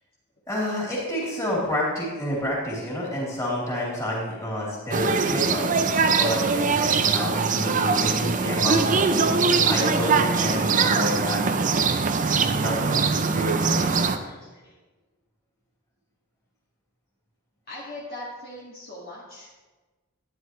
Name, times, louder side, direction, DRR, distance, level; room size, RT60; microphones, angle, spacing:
voice 1, 0.5-11.6 12.4-14.0, equal, 15° left, -6 dB, 3.4 m, -29 dB
sound 1, 4.9-14.2, right 5 dB, 35° right, 0.6 m, -22 dB
voice 2, 7.0-8.2 14.1-14.7 17.7-19.7, left 1 dB, 45° left, -7 dB, 2.0 m, -45 dB
12.5 x 10.0 x 3.1 m, 1.2 s
head